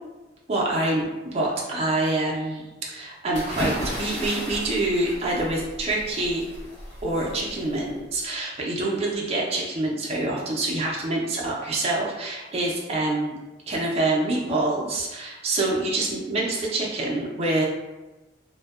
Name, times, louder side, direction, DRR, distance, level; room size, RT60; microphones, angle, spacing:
voice 1, 0.5-6.4 7.0-13.4 13.7-17.7, right 2 dB, 35° right, -4 dB, 0.4 m, -26 dB
sound 1, 3.3-8.2, equal, 80° left, 1.3 m, -34 dB
2.6 x 2.1 x 2.3 m, 1.1 s
head